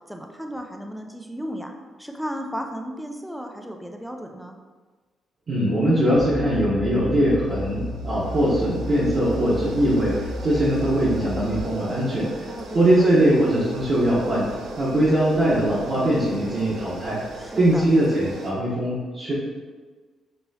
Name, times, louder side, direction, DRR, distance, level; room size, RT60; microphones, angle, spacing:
voice 1, 0.1-1.7 2.0-4.6 12.5-13.2 17.4-17.8, equal, ahead, 3 dB, 0.4 m, -34 dB
voice 2, 5.5-12.5 12.7-14.4 14.8-17.2 17.6-19.3, right 1 dB, 40° right, -10 dB, 1.0 m, -21 dB
sound 1, 6.1-11.6, left 1 dB, 30° left, 0.8 m, -33 dB
sound 2, 6.9-18.5, right 2 dB, 70° right, 0.6 m, -40 dB
5.4 x 2.9 x 2.8 m, 1.4 s
cardioid pair, 135°, 0 cm